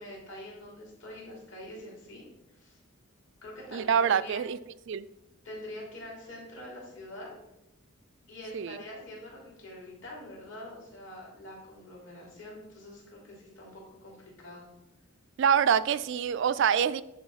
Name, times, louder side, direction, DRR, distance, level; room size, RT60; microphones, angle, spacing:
voice 1, 0.0-2.2 2.6-2.8 3.4-4.4 5.4-7.4 8.3-14.7, left 1 dB, 60° left, -3 dB, 3.4 m, -45 dB
voice 2, 3.7-4.6 4.9-5.1 8.5-8.8 15.4-17.0, right 7 dB, 55° right, 15 dB, 0.3 m, -25 dB
10.5 x 3.8 x 5.6 m, 0.88 s
head